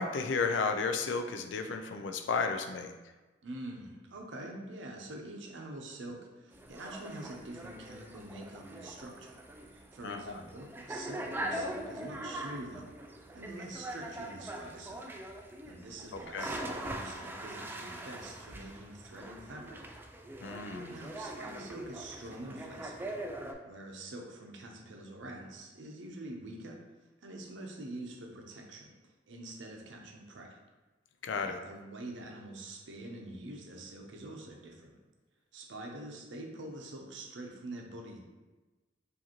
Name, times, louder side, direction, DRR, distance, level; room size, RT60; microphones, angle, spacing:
voice 1, 0.0-2.9 10.0-10.2 16.1-16.5 20.4-20.9 31.2-31.6, left 4 dB, 70° left, 7 dB, 0.4 m, -33 dB
voice 2, 3.4-9.3 9.7-12.9 13.3-15.0 15.7-19.8 20.9-23.1 23.6-26.8 27.2-28.9 29.3-30.6 31.4-35.0 35.5-38.2, right 1 dB, 75° right, 1 dB, 0.7 m, -45 dB
sound 1, 6.5-23.5, right 1 dB, 10° right, 0.3 m, -42 dB
4.8 x 2.6 x 3.0 m, 1.2 s
head